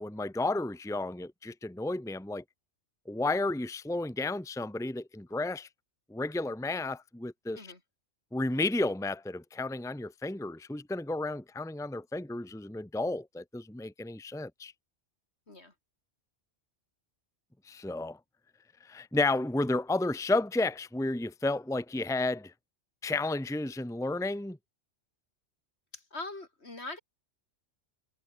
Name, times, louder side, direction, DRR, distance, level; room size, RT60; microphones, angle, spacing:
voice 1, 0.0-2.4 3.1-5.7 6.1-7.7 8.3-14.7 17.6-18.2 18.8-22.5 23.0-24.6, left 2 dB, 5° left, 1.1 m, -32 dB
voice 2, 25.9-27.0, left 2 dB, 65° left, 4.1 m, -42 dB
omnidirectional pair, 1.2 m